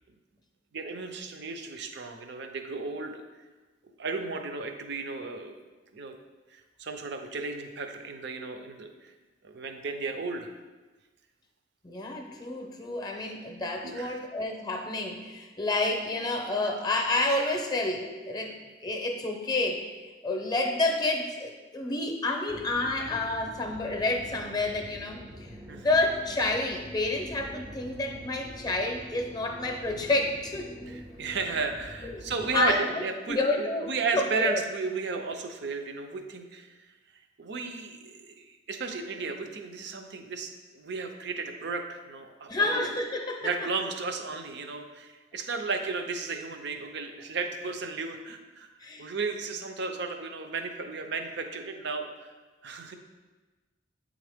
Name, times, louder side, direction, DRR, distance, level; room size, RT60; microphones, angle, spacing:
voice 1, 0.7-3.2 4.0-5.6 5.9-6.1 6.5-9.1 9.4-10.5 13.8-14.2 25.7-25.9 30.9-36.7 37.4-42.8 43.4-48.7 49.0-52.3 52.6-53.0, right 4 dB, 65° right, 6 dB, 0.6 m, -34 dB
voice 2, 11.8-19.9 20.2-30.7 32.0-32.2 32.5-34.6 42.5-43.5 48.8-49.1, left 2 dB, 20° left, 3 dB, 0.6 m, -29 dB
sound 1, 22.5-32.8, equal, 20° right, 0.5 m, -45 dB
8.1 x 3.8 x 3.5 m, 1.2 s
head